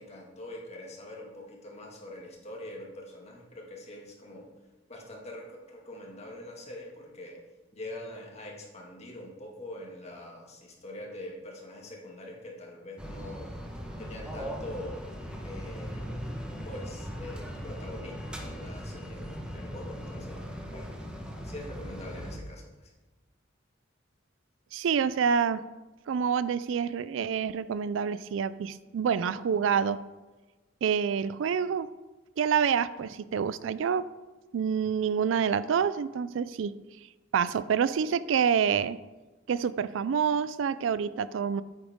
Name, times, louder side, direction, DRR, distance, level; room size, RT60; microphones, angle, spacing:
voice 1, 0.0-4.5 4.9-7.4 7.7-13.5 14.0-15.0 15.4-16.1 16.7-20.4 20.7-20.9 21.4-22.6, left 1 dB, 35° left, -1 dB, 1.9 m, -43 dB
sound 1, 13.0-22.4, equal, 5° right, 1.1 m, -39 dB
voice 2, 24.7-25.6 26.1-30.0 30.8-31.9 32.4-34.1 34.5-36.8 37.3-39.0 39.5-41.6, right 7 dB, 80° right, 16 dB, 0.4 m, -27 dB
8.9 x 8.6 x 3.6 m, 1.2 s
head